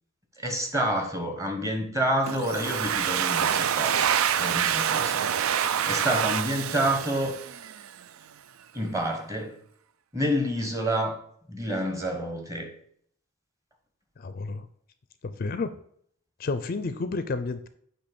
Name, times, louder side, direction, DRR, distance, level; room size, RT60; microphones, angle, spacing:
voice 1, 0.4-7.4 8.7-9.6 10.1-11.2 11.5-12.7, right 1 dB, 15° right, 4 dB, 1.1 m, -28 dB
Domestic sounds home sounds, 2.3-7.9, right 9 dB, 80° right, 0.4 m, -26 dB
voice 2, 14.2-14.6 15.2-15.8 16.4-17.7, left 3 dB, 45° left, 12 dB, 0.4 m, -31 dB
8.5 x 2.9 x 6.0 m, 0.65 s
head